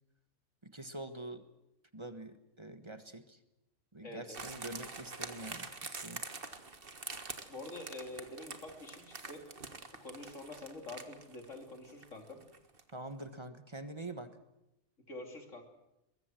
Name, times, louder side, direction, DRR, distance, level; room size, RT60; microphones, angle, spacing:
voice 1, 0.6-1.4 1.9-3.4 3.9-6.2 12.9-14.4, right 2 dB, 25° right, 9 dB, 1.4 m, -45 dB
voice 2, 4.0-4.4 7.5-9.4 10.0-12.4 15.1-15.6, left 2 dB, 75° left, 4 dB, 3.6 m, -46 dB
sound 1, 4.3-12.9 13.2-13.3, right 4 dB, 45° right, 1.9 m, -46 dB
23.0 x 21.5 x 7.7 m, 0.90 s
omnidirectional pair, 1.3 m